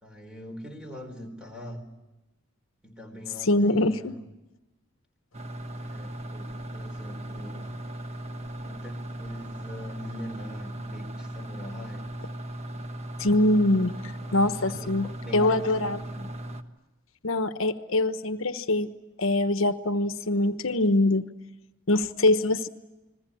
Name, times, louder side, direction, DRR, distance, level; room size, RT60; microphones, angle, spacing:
voice 1, 0.0-1.9 2.8-4.2 5.8-7.7 8.6-12.1 14.6-16.0, equal, 5° right, 5 dB, 4.2 m, -43 dB
voice 2, 3.4-4.1 13.2-13.9 14.3-16.3 17.2-18.9 19.2-21.3 21.9-22.7, left 2 dB, 80° left, 10 dB, 1.1 m, -24 dB
sound 1, 5.3-16.6, right 1 dB, 35° right, 1.3 m, -37 dB
29.5 x 21.0 x 8.6 m, 1.0 s
head